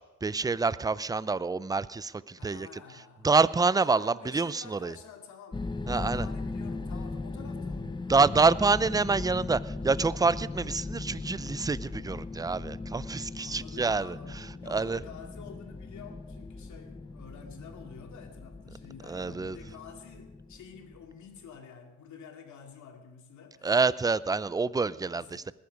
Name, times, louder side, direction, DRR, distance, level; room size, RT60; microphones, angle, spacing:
voice 1, 0.0-2.7 3.2-4.9 5.9-6.3 8.1-15.0 19.1-19.6 23.6-25.4, right 4 dB, 15° right, 18 dB, 0.4 m, -27 dB
voice 2, 2.4-3.3 3.8-8.6 13.4-23.7 25.0-25.4, left 6 dB, 70° left, 4 dB, 2.5 m, -49 dB
sound 1, 5.5-21.4, left 3 dB, 15° left, 0.8 m, -38 dB
20.0 x 9.6 x 5.3 m, 1.0 s
cardioid pair, 90°, 30 cm